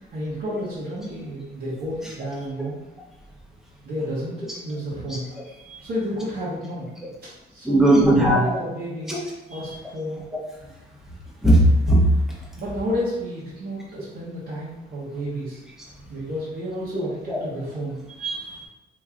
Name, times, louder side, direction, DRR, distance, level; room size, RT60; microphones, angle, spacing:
voice 1, 0.1-2.8 3.8-5.2 5.8-6.9 7.2-9.2 9.5-10.2 12.6-15.6 16.1-18.0, equal, 55° right, -9 dB, 1.3 m, -31 dB
voice 2, 7.6-8.4 9.1-9.2 11.4-12.1 17.3-17.4 18.2-18.7, right 1 dB, ahead, -5 dB, 1.2 m, -17 dB
3.1 x 2.9 x 3.7 m, 0.98 s
cardioid pair, 90°, 20 cm